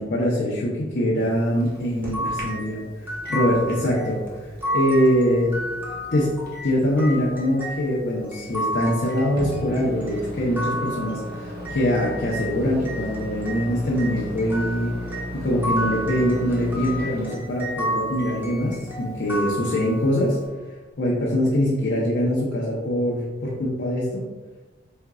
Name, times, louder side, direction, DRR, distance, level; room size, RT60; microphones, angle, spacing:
voice 1, 0.0-5.6 6.1-6.3 6.6-15.0 15.3-20.4 21.0-24.2, equal, 60° left, -5 dB, 0.7 m, -23 dB
Microwave oven, 1.2-20.5, left 1 dB, 55° right, 1.0 m, -37 dB
sound 1, 2.0-12.5 12.8-20.2, equal, 10° right, 0.7 m, -32 dB
4.4 x 3.7 x 2.3 m, 1.2 s
head